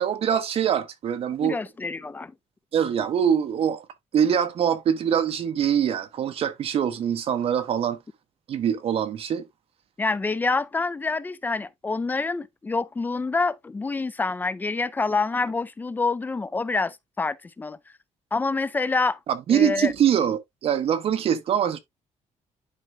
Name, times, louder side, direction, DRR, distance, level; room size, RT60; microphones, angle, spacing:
voice 1, 0.0-1.6 2.7-3.8 4.1-8.0 8.5-9.4 19.3-21.8, right 8 dB, 50° right, 0.7 m, -23 dB
voice 2, 1.4-2.3 10.0-17.8 18.3-19.2 19.5-19.9, left 3 dB, 15° left, 0.4 m, -27 dB
11.0 x 4.5 x 2.4 m
cardioid pair, 170°, 12 cm